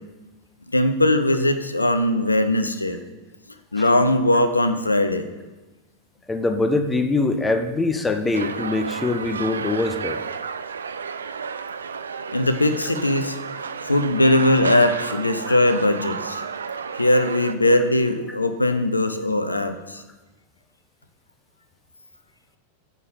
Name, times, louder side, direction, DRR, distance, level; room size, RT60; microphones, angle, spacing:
voice 1, 0.7-3.0 3.7-5.3 12.3-16.4 16.9-20.0, left 1 dB, 80° left, 9 dB, 0.5 m, -20 dB
voice 2, 6.3-10.2 15.5-15.6, left 3 dB, 10° left, 7 dB, 0.6 m, -23 dB
sound 1, 8.3-17.5, right 6 dB, 70° right, 0.3 m, -32 dB
9.2 x 3.7 x 6.3 m, 1.2 s
figure-of-eight pair, 90°, 0 cm